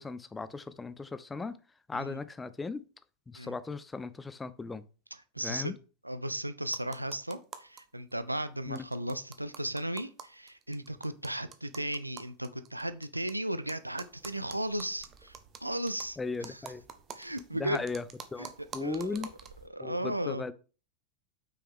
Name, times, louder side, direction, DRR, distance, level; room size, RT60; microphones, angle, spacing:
voice 1, 0.0-1.6 1.9-2.8 3.3-4.8 5.4-5.7 8.7-8.8 16.2-16.8 17.5-18.0 18.3-19.3 19.8-20.5, left 4 dB, 10° left, 0.4 m, -37 dB
voice 2, 5.3-5.8 6.0-15.4 15.6-16.6 17.1-17.9 18.4-18.5 18.8-19.2 19.7-20.4, right 1 dB, 85° right, 0.4 m, -35 dB
sound 1, 6.7-7.8 8.1-8.2 8.4-8.5 8.8-13.3 13.7-19.7, right 7 dB, 30° right, 0.7 m, -48 dB
5.9 x 4.7 x 3.5 m
figure-of-eight pair, 90°, 0 cm